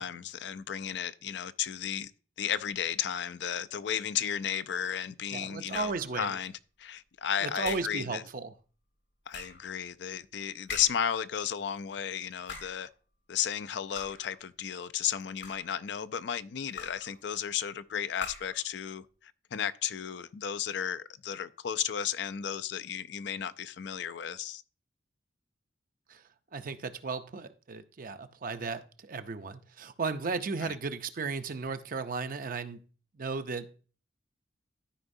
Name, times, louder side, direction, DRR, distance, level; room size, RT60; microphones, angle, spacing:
voice 1, 0.0-2.1 2.4-6.5 6.8-8.2 9.3-12.9 13.3-24.6 30.6-30.7, left 9 dB, 65° left, 0.4 m, -34 dB
voice 2, 5.3-6.3 7.4-8.5 26.1-26.2 26.5-32.8 33.2-33.7, right 4 dB, 50° right, 0.6 m, -35 dB
sound 1, 5.7-6.1 7.6-8.0 9.3-9.7 10.7-11.2 12.3-12.9 14.0-14.4 15.2-15.8 16.8-17.2 18.2-18.6, left 5 dB, 90° left, 2.2 m, -43 dB
13.0 x 4.9 x 2.6 m
head